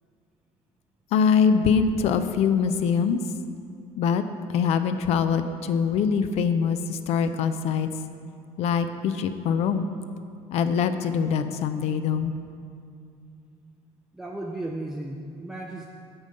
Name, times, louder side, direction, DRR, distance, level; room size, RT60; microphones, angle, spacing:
voice 1, 1.1-3.2 4.0-4.2 4.5-7.9 8.6-9.9 10.5-12.3, left 6 dB, 60° left, 10 dB, 0.5 m, -23 dB
voice 2, 14.1-15.9, right 1 dB, 5° right, -1 dB, 0.5 m, -34 dB
8.7 x 5.4 x 7.6 m, 2.5 s
cardioid pair, 165°, 12 cm